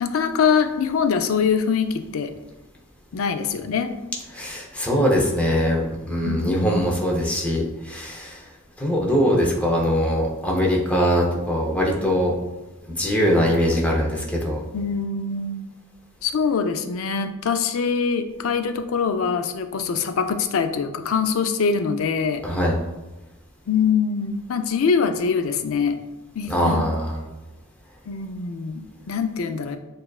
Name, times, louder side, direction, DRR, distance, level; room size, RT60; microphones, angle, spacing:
voice 1, 0.0-2.3 3.1-3.9 6.2-6.9 14.7-15.8 16.2-22.4 23.7-26.0 26.4-26.8 28.1-29.8, left 5 dB, 70° left, 8 dB, 0.4 m, -23 dB
voice 2, 4.3-8.4 8.8-12.3 13.0-14.6 22.4-22.8 26.5-27.2, equal, 5° left, -2 dB, 0.7 m, -22 dB
7.0 x 2.5 x 2.3 m, 1.1 s
head